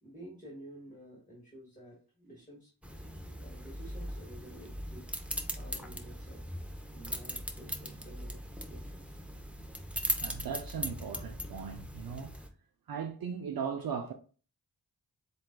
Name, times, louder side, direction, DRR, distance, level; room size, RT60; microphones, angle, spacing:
voice 1, 0.0-3.1 3.4-5.1 5.6-6.4 6.9-8.4 8.7-9.2, right 1 dB, 20° left, 1.6 m, -51 dB
sound 1, 2.8-12.5, equal, 5° right, 0.7 m, -39 dB
voice 2, 10.2-12.4 12.9-14.1, right 6 dB, 60° right, 0.5 m, -38 dB
7.5 x 2.6 x 2.2 m
wide cardioid pair, 65°, 39 cm